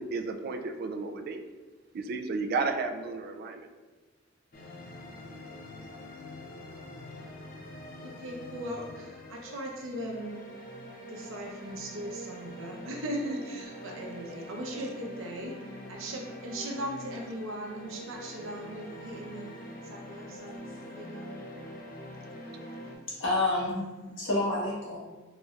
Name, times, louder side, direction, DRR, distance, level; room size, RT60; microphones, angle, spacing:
voice 1, 0.0-1.4 1.9-3.7, right 3 dB, 50° right, 5 dB, 0.3 m, -33 dB
sound 1, 4.5-23.0, equal, 45° left, 0.6 m, -44 dB
voice 2, 8.0-10.4 11.1-15.5 15.9-19.5 19.8-20.7 21.0-21.3, equal, 85° right, 0 dB, 0.7 m, -38 dB
voice 3, 23.1-25.0, left 2 dB, 75° left, -7 dB, 1.4 m, -29 dB
3.9 x 3.2 x 2.4 m, 1.3 s
head